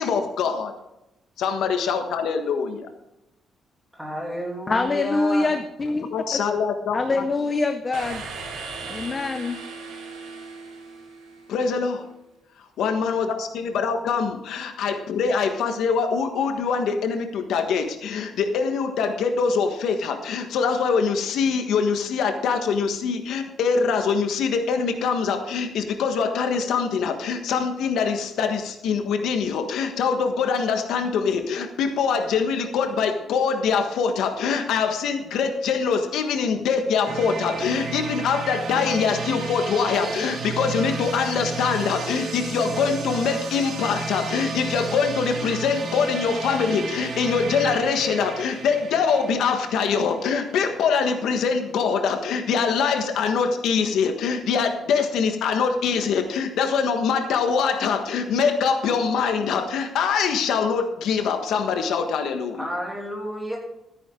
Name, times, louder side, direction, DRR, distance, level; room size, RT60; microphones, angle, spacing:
voice 1, 0.0-0.7 1.4-2.9 5.9-7.2 11.5-12.0 12.8-62.7, left 5 dB, 75° left, 6 dB, 1.4 m, -24 dB
voice 2, 3.9-5.5 62.6-63.6, equal, ahead, -2 dB, 2.6 m, -31 dB
voice 3, 4.7-6.4 6.9-8.2 8.9-9.6, left 3 dB, 20° left, 8 dB, 0.6 m, -25 dB
sound 1, 7.9-11.8, right 4 dB, 80° right, 3.2 m, -37 dB
sound 2, 37.1-50.8, right 4 dB, 50° right, 2.1 m, -32 dB
13.5 x 9.6 x 3.8 m, 0.90 s
cardioid pair, 175°, 0 cm